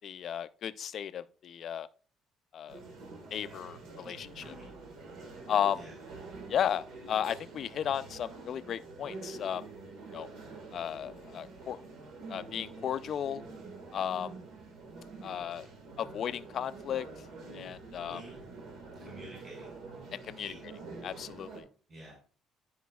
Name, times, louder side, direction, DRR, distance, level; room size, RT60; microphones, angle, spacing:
voice 1, 0.0-1.9 2.5-2.8 3.3-4.5 5.5-5.8 6.5-9.6 10.1-10.3 10.7-11.8 12.3-13.4 13.9-14.3 15.2-15.7 16.0-17.1 17.5-18.2 20.1-20.5 21.0-21.6, left 9 dB, 50° left, 0.4 m, -34 dB
sound 1, 2.7-21.6, right 3 dB, 75° right, 1.5 m, -47 dB
voice 2, 18.1-18.4 19.0-19.7 20.4-20.6 21.9-22.1, right 1 dB, 40° right, 3.9 m, -50 dB
11.0 x 5.1 x 2.3 m
cardioid pair, 125°, 0 cm